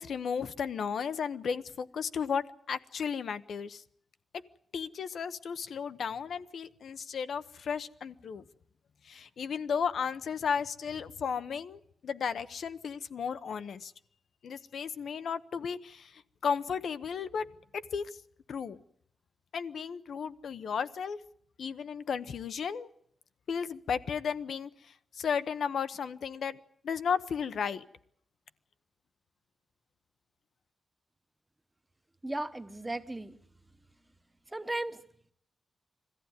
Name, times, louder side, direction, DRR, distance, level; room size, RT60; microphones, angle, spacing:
voice 1, 0.0-3.8 4.7-8.4 9.0-13.9 14.4-17.5 17.7-18.1 18.5-18.8 19.5-21.2 21.6-22.9 23.5-27.8, left 6 dB, 75° left, 13 dB, 0.9 m, -34 dB
voice 2, 32.2-33.4 34.5-35.0, right 2 dB, 15° right, 11 dB, 1.0 m, -35 dB
22.0 x 15.0 x 9.7 m, 0.71 s
wide cardioid pair, 145°, 0 cm